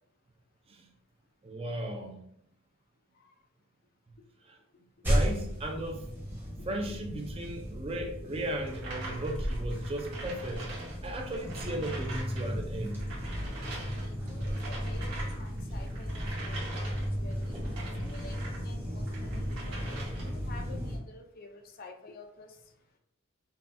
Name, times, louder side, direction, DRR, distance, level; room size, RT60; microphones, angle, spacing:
voice 1, 1.4-2.3 4.4-4.6 5.0-6.1 6.6-10.7 11.0-13.4, right 1 dB, 25° right, 2 dB, 0.4 m, -36 dB
sound 1, 5.0-21.0, equal, 10° right, 0.8 m, -35 dB
sound 2, 8.7-12.5 12.7-18.6 19.0-20.5, right 2 dB, 90° right, 1.4 m, -44 dB
voice 2, 14.0-17.4 18.0-22.5, left 3 dB, 40° left, 4 dB, 0.4 m, -50 dB
5.5 x 2.2 x 2.6 m, 0.73 s
head